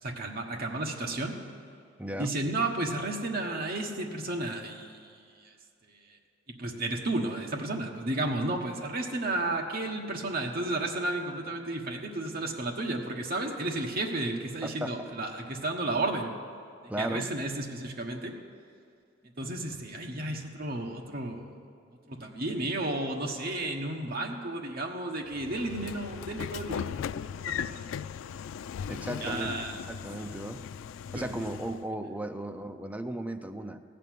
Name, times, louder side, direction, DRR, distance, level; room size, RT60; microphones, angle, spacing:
voice 1, 0.0-1.4 2.2-5.5 6.5-16.3 17.0-18.3 19.4-21.5 22.1-27.8 29.2-29.8 30.4-30.5 31.1-31.3, right 2 dB, 50° right, 1 dB, 1.3 m, -33 dB
voice 2, 2.0-2.3 14.6-15.1 16.9-17.3 28.9-30.6 31.1-33.8, right 1 dB, 10° right, 6 dB, 0.5 m, -36 dB
Train / Sliding door, 25.3-31.9, left 8 dB, 90° left, 0.3 m, -38 dB
16.0 x 6.8 x 9.3 m, 2.4 s
head